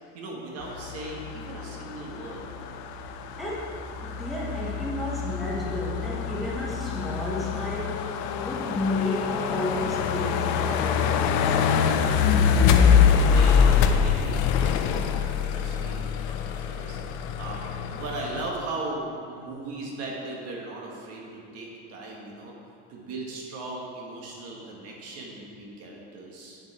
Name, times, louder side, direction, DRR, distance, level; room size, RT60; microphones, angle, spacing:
voice 1, 0.1-2.5 12.3-12.9 13.3-17.6 17.9-22.5 22.9-26.6, right 2 dB, 50° right, -2 dB, 1.8 m, -38 dB
sound 1, 0.6-18.5, left 7 dB, 65° left, 0.7 m, -25 dB
voice 2, 3.4-11.5, left 1 dB, ahead, -7 dB, 1.4 m, -32 dB
9.3 x 8.0 x 4.4 m, 2.6 s
cardioid pair, 160°, 31 cm